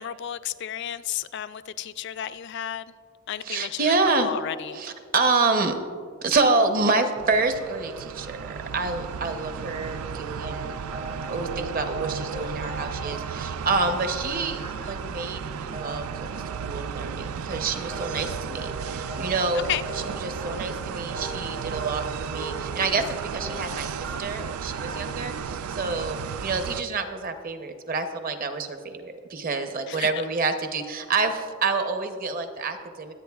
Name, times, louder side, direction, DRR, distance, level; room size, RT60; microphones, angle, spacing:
voice 1, 0.0-2.9 3.3-3.9 4.2-4.8 19.7-19.8 29.9-30.1, left 10 dB, 50° left, 14 dB, 0.3 m, -32 dB
voice 2, 3.4-4.3 4.7-5.8 6.2-16.3 16.6-19.7 19.9-23.9 24.2-33.1, right 3 dB, 40° right, 7 dB, 0.7 m, -28 dB
sound 1, 7.2-26.8, right 6 dB, 75° right, 0.3 m, -34 dB
sound 2, 10.4-11.6 11.9-15.4 15.7-16.9 17.9-25.4, right 1 dB, 60° right, 2.2 m, -40 dB
23.0 x 8.6 x 2.3 m, 2.1 s
head